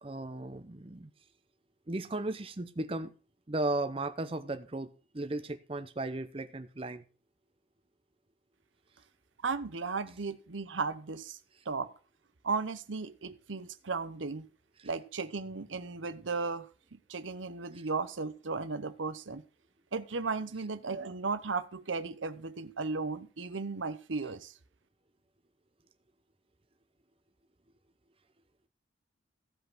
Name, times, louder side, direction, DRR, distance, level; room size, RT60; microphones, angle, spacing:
voice 1, 0.0-1.1 1.9-3.1 3.5-7.0 14.8-14.9 17.7-17.8, right 2 dB, 30° right, 9 dB, 0.7 m, -36 dB
voice 2, 9.4-11.4 11.7-11.9 12.4-14.5 14.8-16.7 16.9-19.4 19.9-24.5, right 4 dB, 85° right, 12 dB, 0.9 m, -35 dB
15.0 x 5.3 x 6.0 m, 0.37 s
head